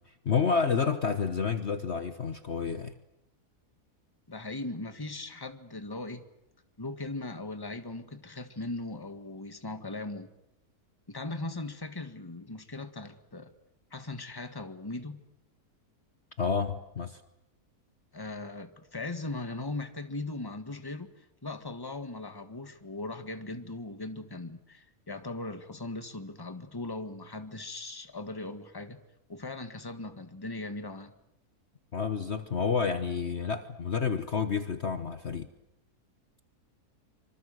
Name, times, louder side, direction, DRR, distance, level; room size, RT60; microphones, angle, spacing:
voice 1, 0.2-2.9 16.4-17.2 31.9-35.5, left 5 dB, 45° left, 1.4 m, -29 dB
voice 2, 4.3-6.2 6.8-10.3 11.1-13.5 13.9-15.2 18.1-29.0 29.3-31.1, left 2 dB, 15° left, 1.7 m, -39 dB
26.0 x 25.0 x 7.9 m
omnidirectional pair, 1.7 m